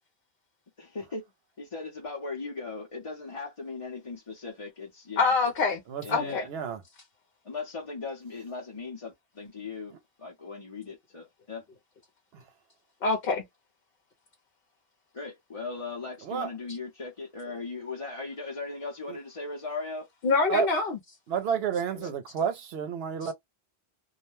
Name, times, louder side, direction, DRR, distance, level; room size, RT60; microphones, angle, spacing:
voice 1, 0.8-1.2 1.6-5.3 6.0-6.5 7.4-9.9 10.2-11.6 15.1-20.1 21.9-22.1, left 4 dB, 35° left, 0.7 m, -38 dB
voice 2, 5.2-5.8 6.1-6.4 13.0-13.4 20.2-21.0 23.2-23.3, left 4 dB, 60° left, 0.9 m, -25 dB
voice 3, 5.9-6.8 12.3-12.4 16.2-16.5 19.1-19.2 20.5-20.7 21.3-23.3, right 7 dB, 70° right, 0.9 m, -30 dB
2.4 x 2.1 x 3.0 m
omnidirectional pair, 1.1 m